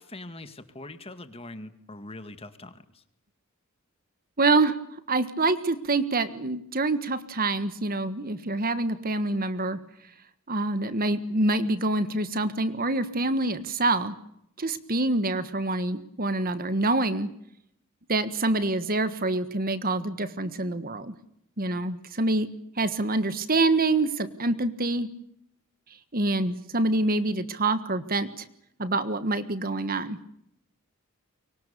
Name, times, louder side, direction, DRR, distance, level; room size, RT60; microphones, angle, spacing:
voice 1, 0.0-3.0, left 2 dB, 25° left, 10 dB, 2.1 m, -42 dB
voice 2, 4.4-4.8 5.1-9.8 10.5-14.1 14.6-17.3 18.1-21.1 21.6-22.5 22.8-25.1 26.1-28.4 28.8-30.2, right 2 dB, 40° right, 12 dB, 1.6 m, -26 dB
29.5 x 24.0 x 6.9 m, 0.76 s
head